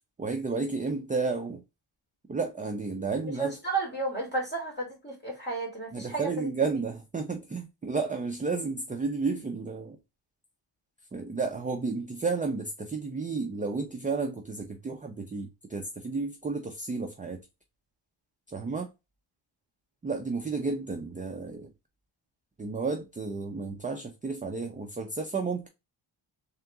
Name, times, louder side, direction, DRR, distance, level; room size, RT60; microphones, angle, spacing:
voice 1, 0.2-1.6 2.3-3.6 5.9-10.0 11.1-17.4 18.5-18.9 20.0-21.7 22.6-25.7, right 4 dB, 20° right, 0.3 m, -32 dB
voice 2, 3.4-6.5, right 3 dB, 20° left, 2.1 m, -32 dB
3.6 x 2.8 x 3.4 m
wide cardioid pair, 165°, 49 cm